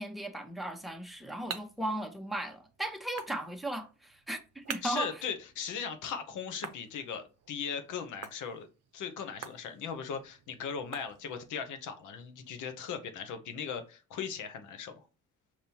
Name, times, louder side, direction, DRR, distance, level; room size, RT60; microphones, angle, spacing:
voice 1, 0.0-5.1, right 1 dB, ahead, 0.8 m, -36 dB
sound 1, 0.8-11.6, right 8 dB, 55° right, 0.7 m, -49 dB
voice 2, 4.8-8.7 8.9-15.0, left 7 dB, 80° left, 0.9 m, -38 dB
5.2 x 3.0 x 2.8 m
cardioid pair, 90°, 30 cm